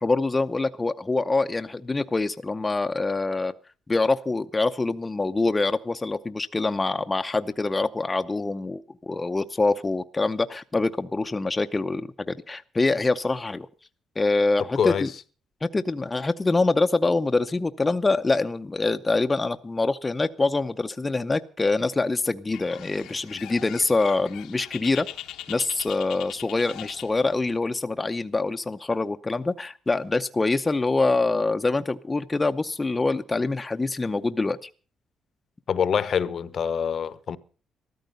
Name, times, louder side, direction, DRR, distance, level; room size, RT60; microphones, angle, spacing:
voice 1, 0.0-3.5 3.9-13.7 14.2-15.1 15.6-25.1 25.5-34.7, left 3 dB, 20° left, 0.7 m, -25 dB
voice 2, 14.8-15.1 35.7-37.4, left 7 dB, 55° left, 0.9 m, -25 dB
Bird, 22.5-27.6, left 12 dB, 90° left, 1.1 m, -41 dB
14.0 x 13.5 x 5.4 m
cardioid pair, 90°, 0 cm